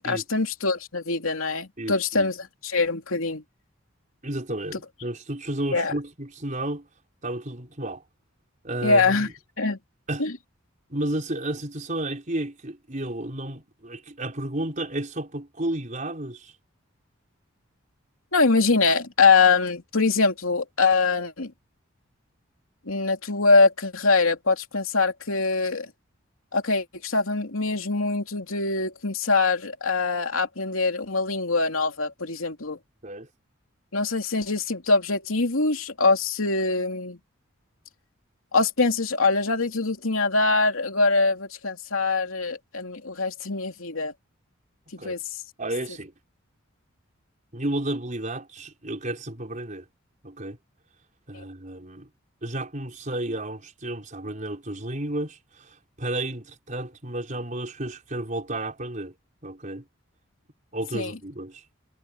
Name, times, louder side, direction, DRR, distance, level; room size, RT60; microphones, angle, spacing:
voice 1, 0.0-3.4 5.7-5.9 8.8-9.3 9.6-9.8 10.2-10.3 18.3-21.5 22.9-25.9 26.5-32.8 33.9-37.2 38.5-44.1 44.9-45.3 51.3-51.4 60.9-61.1, left 3 dB, 85° left, 2.9 m, -23 dB
voice 2, 1.8-2.3 4.2-6.9 7.2-8.0 8.6-9.3 10.1-10.3 10.9-16.5 33.0-33.3 45.0-45.2 45.6-46.1 47.5-49.9 50.2-50.6 51.3-52.1 52.4-59.1 59.4-59.8 60.7-61.6, right 1 dB, 40° right, 4.8 m, -32 dB
head